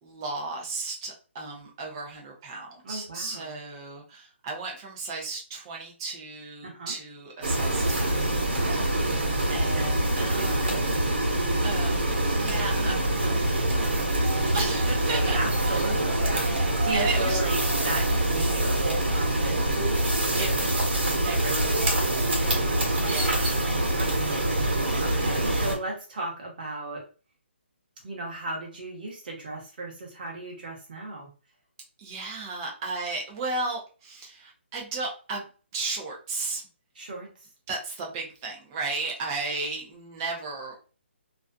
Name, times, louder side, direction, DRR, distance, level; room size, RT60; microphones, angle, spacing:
voice 1, 0.0-8.4 8.7-8.8 9.5-10.8 11.6-12.0 12.4-15.4 15.7-15.8 16.2-16.4 16.9-17.4 20.4-20.5 21.2-22.1 22.9-24.0 32.0-35.5 35.7-36.6 37.7-40.7, right 3 dB, 20° right, -1 dB, 0.5 m, -35 dB
voice 2, 2.8-3.6 6.6-7.0 8.5-9.2 10.2-11.0 12.8-13.1 14.5-17.6 17.8-20.7 21.3-21.8 22.2-23.7 24.0-27.1 28.0-31.3 36.9-37.5, right 2 dB, 45° right, -1 dB, 1.0 m, -36 dB
sound 1, 7.4-25.8, right 1 dB, 60° right, 1.2 m, -25 dB
2.5 x 2.3 x 2.2 m, 0.36 s
hypercardioid pair, 170°, 7 cm